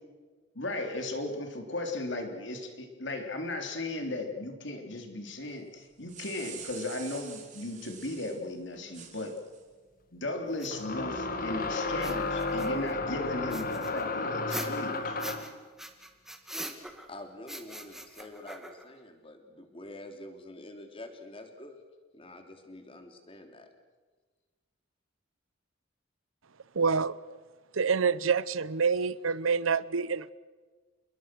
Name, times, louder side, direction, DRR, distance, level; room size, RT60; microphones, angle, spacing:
voice 1, 0.6-9.4 10.1-15.2, left 2 dB, 60° left, 3.7 m, -36 dB
sound 1, 5.8-8.4 8.9-9.6, right 8 dB, 40° right, 3.6 m, -46 dB
sound 2, 8.7-8.8 10.7-15.5, left 3 dB, 45° left, 2.1 m, -32 dB
sound 3, 10.6-10.7 11.9-12.9 13.5-15.5 15.8-17.1 17.5-19.0, right 1 dB, ahead, 2.0 m, -41 dB
voice 2, 17.1-21.8 22.1-23.7, left 1 dB, 25° left, 3.1 m, -47 dB
voice 3, 26.7-27.2 27.7-30.3, right 5 dB, 85° right, 0.8 m, -27 dB
28.5 x 21.5 x 6.3 m
head